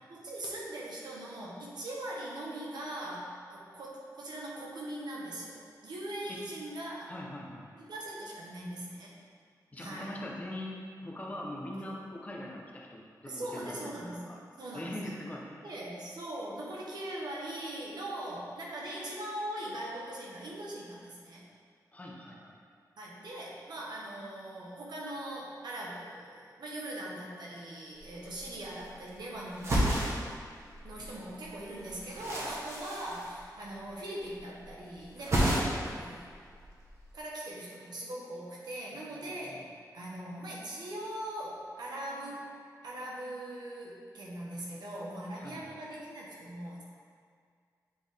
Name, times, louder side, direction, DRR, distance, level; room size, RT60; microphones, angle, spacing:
voice 1, 0.1-7.1 7.7-9.1 9.8-10.1 11.8-12.0 13.2-14.3 14.6-15.1 15.6-21.4 23.0-30.4 30.8-36.3 37.1-39.6 39.9-42.5 42.8-46.8, right 1 dB, 90° right, -4 dB, 1.2 m, -41 dB
voice 2, 7.1-7.7 9.7-13.0 13.3-13.9 14.3-14.4 14.7-15.7 21.9-22.6 31.0-31.1 38.9-39.6 45.4-45.7, left 1 dB, 20° left, -2 dB, 0.7 m, -42 dB
sound 1, 28.0-28.1 28.3-29.1 29.5-31.1 31.4-33.9 34.2-34.7 34.9-36.0 36.3-37.1, right 1 dB, 40° right, 1.1 m, -32 dB
8.2 x 3.8 x 3.5 m, 2.1 s
wide cardioid pair, 180°, 7 cm